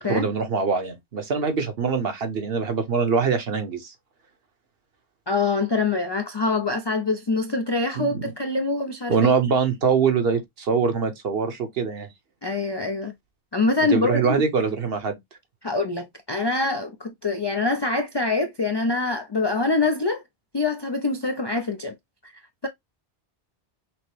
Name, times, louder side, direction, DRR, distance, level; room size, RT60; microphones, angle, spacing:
voice 1, 0.1-3.9 8.0-8.1 9.1-12.1 13.9-15.2, right 5 dB, 60° right, 1.1 m, -23 dB
voice 2, 5.3-9.3 12.4-13.1 13.5-14.2 15.6-20.2 20.5-21.9 22.2-22.3, left 3 dB, 45° left, 0.3 m, -24 dB
5.9 x 2.0 x 3.1 m
omnidirectional pair, 1.2 m